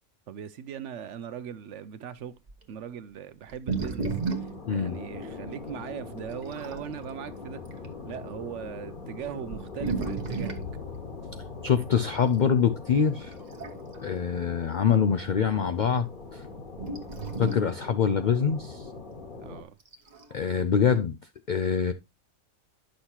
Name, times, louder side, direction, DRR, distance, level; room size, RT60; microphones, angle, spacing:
voice 1, 0.3-2.3 2.7-4.1 4.3-7.6 8.0-10.6 19.4-19.8, right 9 dB, 65° right, 0.9 m, -39 dB
sound 1, 2.5-2.6 3.5-4.6 5.5-5.6 6.3-6.9 7.6-7.9 8.7-8.8 9.4-10.7 12.3-12.5 13.3-14.0 14.4-14.5 16.8-17.7 19.8-20.3, right 4 dB, 35° right, 1.1 m, -33 dB
sound 2, 4.1-19.6, left 3 dB, 40° left, 1.6 m, -42 dB
voice 2, 4.7-5.0 11.6-13.4 14.0-16.4 17.4-18.9 20.3-21.2 21.5-21.9, left 7 dB, 85° left, 0.4 m, -25 dB
sound 3, 10.4-14.4, left 8 dB, 55° left, 1.0 m, -46 dB
9.7 x 6.4 x 2.8 m
omnidirectional pair, 1.4 m